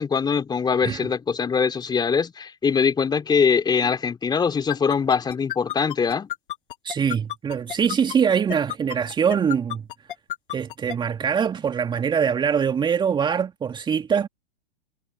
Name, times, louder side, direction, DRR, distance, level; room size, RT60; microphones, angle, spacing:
voice 1, 0.0-6.3, left 6 dB, 15° left, 3.1 m, -22 dB
sound 1, 4.7-10.9, left 12 dB, 55° left, 7.5 m, -31 dB
voice 2, 6.8-9.9 10.5-14.3, right 7 dB, 15° right, 2.1 m, -23 dB
figure-of-eight pair, 105°, 31 cm